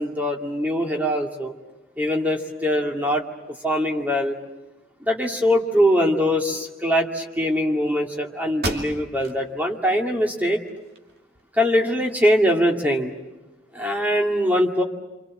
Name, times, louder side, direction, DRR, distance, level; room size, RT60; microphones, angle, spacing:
voice 1, 0.0-1.5 2.0-3.2 3.6-4.4 5.0-10.6 11.5-13.1 13.7-14.8, equal, 10° right, 1 dB, 2.2 m, -22 dB
sound 1, 8.6-9.4 9.9-10.0 10.5-11.4, right 2 dB, 50° right, 2.5 m, -33 dB
27.5 x 25.5 x 7.6 m, 1.1 s
head